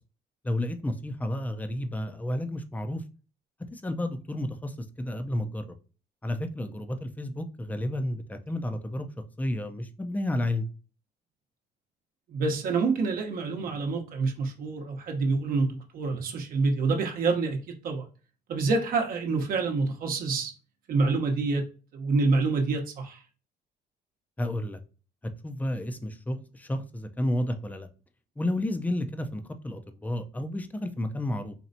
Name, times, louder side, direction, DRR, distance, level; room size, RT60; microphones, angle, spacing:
voice 1, 0.4-3.0 3.7-5.8 6.2-9.1 9.4-10.7 24.4-24.8 25.4-27.9 28.4-31.5, left 1 dB, 10° left, 0.5 m, -31 dB
voice 2, 12.3-18.0 18.5-20.5 20.9-21.6 21.9-23.2, right 3 dB, 60° right, 0.9 m, -27 dB
4.3 x 3.1 x 2.6 m
cardioid pair, 110°, 17 cm